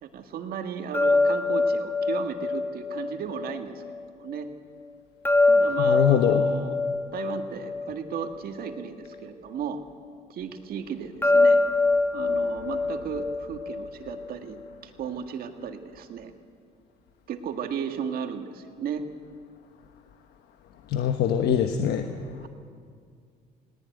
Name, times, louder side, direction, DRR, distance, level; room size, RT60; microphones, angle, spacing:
voice 1, 0.0-3.8 4.2-4.5 5.5-6.8 7.1-9.8 10.3-11.6 12.1-16.3 17.3-19.0 22.4-22.5, right 7 dB, 60° right, 6 dB, 1.9 m, -35 dB
sound 1, 0.9-4.0 5.2-8.8 11.2-14.3, left 3 dB, 15° left, 1.0 m, -24 dB
voice 2, 5.8-6.5 20.9-22.1, left 9 dB, 75° left, 6 dB, 1.2 m, -23 dB
19.0 x 18.5 x 9.4 m, 2.2 s
cardioid pair, 110°, 17 cm